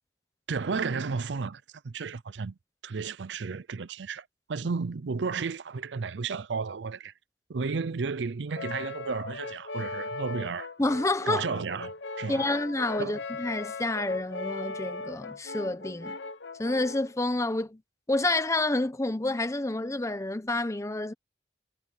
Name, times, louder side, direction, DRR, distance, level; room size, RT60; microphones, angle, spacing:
voice 1, 0.5-2.6 2.8-7.1 7.5-10.7 11.3-12.5 13.0-13.2, right 5 dB, 80° right, 0.5 m, -33 dB
Brass instrument, 8.5-17.1, left 3 dB, 80° left, 0.8 m, -39 dB
voice 2, 10.8-11.4 12.3-16.1 16.6-17.8 18.1-21.1, left 2 dB, 15° left, 0.8 m, -29 dB
head